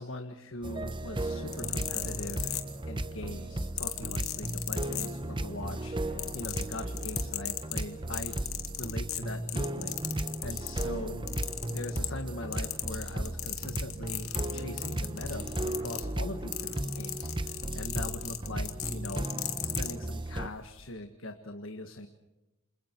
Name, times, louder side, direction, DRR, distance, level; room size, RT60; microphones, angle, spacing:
voice 1, 0.0-8.4 8.8-11.2 11.7-19.3 19.6-22.1, left 2 dB, 60° left, 6 dB, 1.6 m, -42 dB
sound 1, 0.6-20.5, right 1 dB, 20° right, 1.0 m, -35 dB
sound 2, 1.4-3.1 3.8-5.5 5.8-10.9 11.3-12.3 12.5-20.0 20.7-20.9, left 14 dB, 80° left, 2.4 m, -36 dB
29.5 x 27.0 x 4.6 m, 1.0 s
head